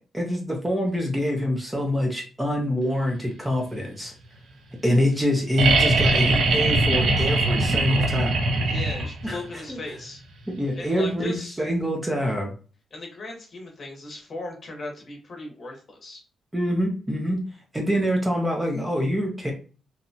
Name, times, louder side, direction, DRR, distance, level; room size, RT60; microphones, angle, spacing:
voice 1, 0.1-4.1 4.8-8.3 9.2-9.8 10.5-12.5 16.5-17.4 17.7-19.5, equal, 10° right, 0 dB, 0.4 m, -25 dB
sound 1, 5.6-9.3 11.1-11.2, right 2 dB, 65° right, 0.5 m, -21 dB
voice 2, 8.5-10.2 10.7-11.6 12.9-16.2, left 2 dB, 40° left, 1 dB, 0.8 m, -37 dB
2.8 x 2.1 x 2.6 m, 0.36 s
wide cardioid pair, 170°, 0 cm